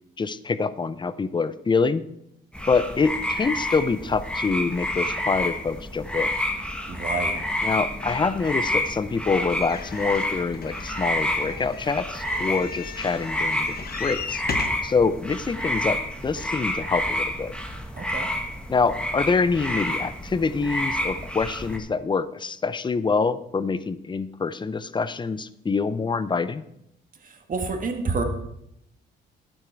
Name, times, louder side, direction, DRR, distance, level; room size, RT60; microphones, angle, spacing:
voice 1, 0.2-2.0 2.7-6.3 7.6-13.7 14.0-14.4 14.8-17.5 18.7-26.6, left 4 dB, 25° left, 15 dB, 0.6 m, -25 dB
sound 1, 2.5-21.8, left 1 dB, 5° left, 1.5 m, -29 dB
voice 2, 6.9-7.4 18.0-18.3 27.2-28.2, right 4 dB, 45° right, 4 dB, 1.8 m, -29 dB
sound 2, 9.5-14.9 15.6-15.7 15.9-16.0, left 5 dB, 50° left, 1.1 m, -36 dB
11.5 x 8.9 x 4.6 m, 0.79 s
cardioid pair, 90°, 20 cm